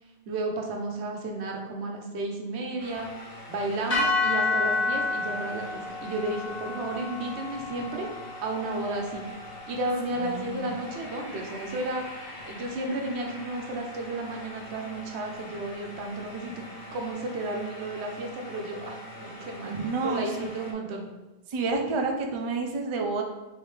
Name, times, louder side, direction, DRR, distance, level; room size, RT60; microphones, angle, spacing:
voice 1, 0.3-3.1 3.5-8.1 8.4-9.2 9.7-12.0 12.4-16.6 16.9-19.7 20.0-21.1, right 2 dB, 85° right, 1 dB, 1.0 m, -33 dB
sound 1, 2.8-20.7, left 1 dB, 65° left, 0.9 m, -44 dB
sound 2, 3.9-12.2, left 3 dB, 35° left, 1.1 m, -31 dB
voice 2, 10.2-10.7 19.7-20.2 21.5-23.2, right 3 dB, 45° right, 2 dB, 0.4 m, -29 dB
3.6 x 3.4 x 3.2 m, 1.1 s
omnidirectional pair, 1.1 m